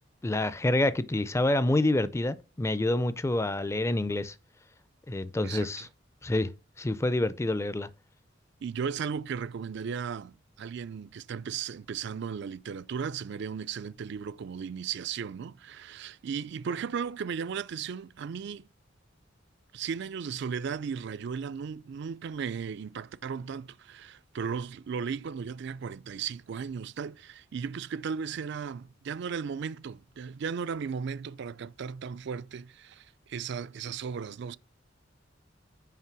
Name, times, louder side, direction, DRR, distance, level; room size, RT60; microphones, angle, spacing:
voice 1, 0.2-4.3 5.1-5.9 6.2-6.5 6.8-7.9, left 2 dB, 15° left, 0.4 m, -27 dB
voice 2, 5.4-5.9 8.6-18.7 19.7-34.6, right 6 dB, 65° right, 0.4 m, -36 dB
5.7 x 5.1 x 6.0 m
head